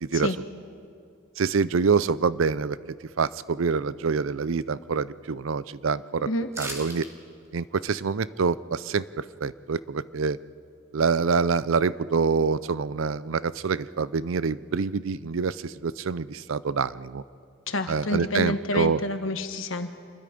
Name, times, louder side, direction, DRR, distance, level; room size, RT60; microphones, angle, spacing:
voice 1, 0.0-0.3 1.4-2.8 3.2-6.3 6.6-7.0 7.5-10.4 10.9-17.2 17.9-19.0, right 5 dB, 80° right, 17 dB, 0.5 m, -26 dB
sound 1, 6.5-7.1 7.4-7.5, right 1 dB, 15° right, 2.5 m, -36 dB
voice 2, 17.7-19.9, left 2 dB, 80° left, 8 dB, 1.4 m, -28 dB
27.5 x 21.0 x 5.2 m, 2.4 s
head